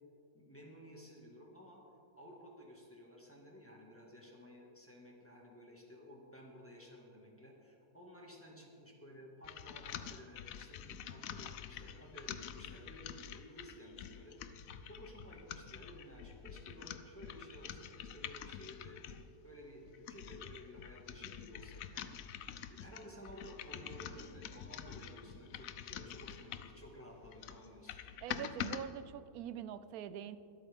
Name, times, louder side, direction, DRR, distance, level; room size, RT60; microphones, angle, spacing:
voice 1, 0.3-1.8 2.2-14.4 14.8-19.0 19.4-22.1 22.7-27.9, equal, 10° left, -2 dB, 1.7 m, -54 dB
sound 1, 9.4-19.3 19.8-26.8 27.2-28.8, left 9 dB, 70° left, 1.0 m, -47 dB
voice 2, 28.2-30.4, right 9 dB, 75° right, 14 dB, 1.0 m, -44 dB
25.0 x 8.6 x 3.6 m, 2.7 s
omnidirectional pair, 1.6 m